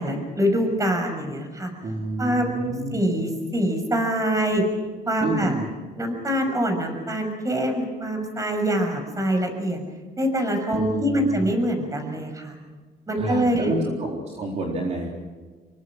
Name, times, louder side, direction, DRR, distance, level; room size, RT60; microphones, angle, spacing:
voice 1, 0.0-1.7 2.2-4.6 5.1-5.5 6.0-9.8 10.2-12.6 13.1-13.7, equal, 20° right, 5 dB, 6.3 m, -24 dB
voice 2, 1.8-3.0 5.2-5.7 10.7-11.5 13.1-15.1, right 2 dB, 40° right, -1 dB, 4.1 m, -29 dB
26.5 x 23.0 x 6.3 m, 1.4 s
cardioid pair, 110°, 17 cm